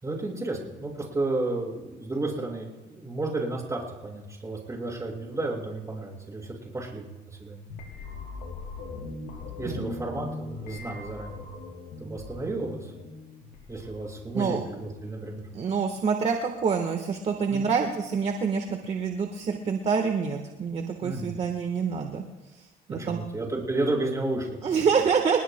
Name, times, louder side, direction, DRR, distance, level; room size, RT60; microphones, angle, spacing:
voice 1, 0.0-7.6 9.6-11.4 12.0-12.9 13.7-15.4 17.5-17.7 21.0-21.3 22.9-24.6, right 2 dB, 20° right, -2 dB, 5.6 m, -32 dB
sound 1, 7.7-14.6, left 3 dB, 80° left, 4.2 m, -40 dB
voice 2, 15.5-22.2 22.5-23.2 24.6-25.4, right 6 dB, 40° right, 4 dB, 1.3 m, -27 dB
28.0 x 19.5 x 2.2 m, 1.1 s
cardioid pair, 110°, 17 cm